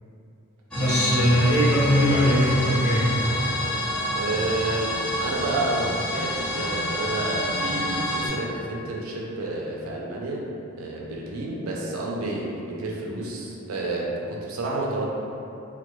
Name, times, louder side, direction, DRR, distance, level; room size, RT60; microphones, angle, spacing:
voice 1, 0.7-3.1, equal, 30° left, -11 dB, 0.8 m, -20 dB
sound 1, 0.7-8.3, left 1 dB, 5° left, 0.3 m, -28 dB
voice 2, 4.2-10.4 10.8-15.0, right 2 dB, 70° right, -3 dB, 0.4 m, -30 dB
2.2 x 2.1 x 2.9 m, 2.7 s
head